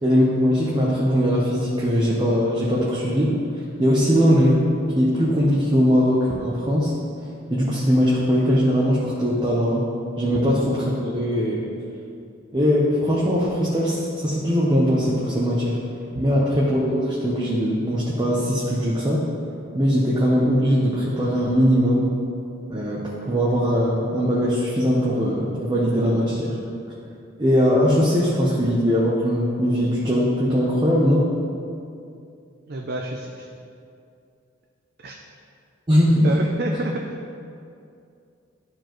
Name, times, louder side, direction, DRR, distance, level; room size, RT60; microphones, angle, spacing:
voice 1, 0.0-3.4 3.8-4.7 5.0-6.9 7.5-9.8 10.2-11.6 12.5-15.8 16.2-19.3 19.7-22.1 22.7-26.6 27.4-31.3 35.9-36.3, equal, 20° right, -6 dB, 0.8 m, -20 dB
voice 2, 32.7-33.5 35.0-35.2 36.2-37.0, right 2 dB, 50° right, 0 dB, 0.5 m, -29 dB
12.5 x 4.6 x 3.1 m, 2.5 s
head